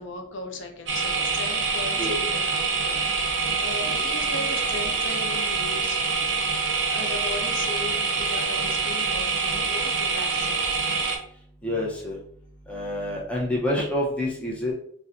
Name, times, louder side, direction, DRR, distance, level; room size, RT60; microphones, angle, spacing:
voice 1, 0.0-6.0 6.9-10.9, left 3 dB, 80° left, 4 dB, 0.5 m, -37 dB
sound 1, 0.9-11.2, right 4 dB, 70° right, 0.6 m, -25 dB
voice 2, 11.6-12.2 12.7-14.7, left 1 dB, 5° left, -4 dB, 0.6 m, -27 dB
4.0 x 2.2 x 2.5 m, 0.62 s
head